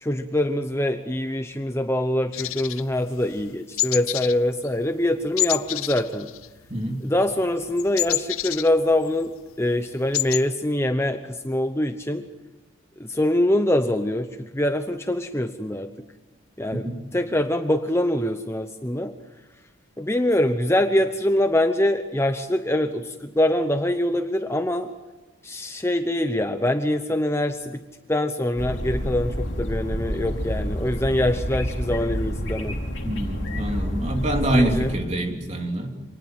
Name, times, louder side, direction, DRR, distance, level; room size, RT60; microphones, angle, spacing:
voice 1, 0.0-6.3 7.0-9.3 9.6-12.2 13.0-15.9 16.6-19.1 20.0-24.9 25.4-27.8 28.1-32.8 34.5-34.9, left 1 dB, 10° left, 7 dB, 0.8 m, -24 dB
sound 1, 2.3-3.5 3.8-4.4 4.6-4.9 5.4-6.9 7.2-9.3 9.6-9.7 9.9-10.4, left 14 dB, 85° left, 0.7 m, -28 dB
voice 2, 6.7-7.0 16.7-17.0 33.0-35.9, right 1 dB, 30° right, 3 dB, 3.1 m, -25 dB
sound 2, 28.6-35.0, equal, 60° left, 3.6 m, -29 dB
27.0 x 19.5 x 7.8 m, 1.1 s
head